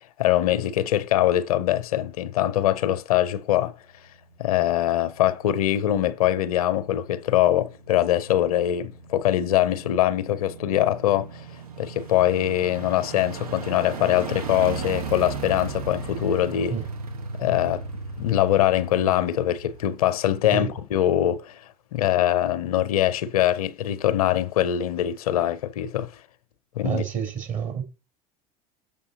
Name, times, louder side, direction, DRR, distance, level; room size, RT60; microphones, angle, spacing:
voice 1, 0.2-3.7 4.4-11.4 11.8-16.8 17.4-17.8 18.2-21.6 21.9-26.1 26.8-27.0, left 12 dB, 70° left, 0.6 m, -23 dB
sound 1, 4.0-20.6 20.9-21.0, right 4 dB, 75° right, 1.2 m, -37 dB
voice 2, 26.8-27.8, right 7 dB, 40° right, 2.5 m, -28 dB
7.0 x 5.4 x 3.9 m
figure-of-eight pair, 75°, 19 cm